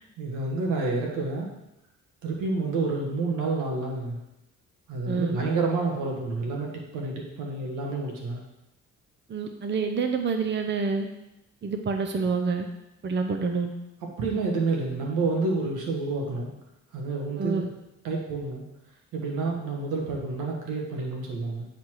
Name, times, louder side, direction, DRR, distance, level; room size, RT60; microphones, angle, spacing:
voice 1, 0.2-1.5 2.2-4.2 4.9-8.4 14.2-16.5 16.9-17.7 18.0-18.6 19.1-21.7, right 3 dB, 90° right, -1 dB, 1.8 m, -29 dB
voice 2, 5.1-5.4 9.3-11.1 11.6-12.7 13.0-13.7 17.4-17.7, right 4 dB, 35° right, 5 dB, 0.8 m, -27 dB
9.3 x 4.2 x 4.8 m, 0.90 s
cardioid pair, 90°, 30 cm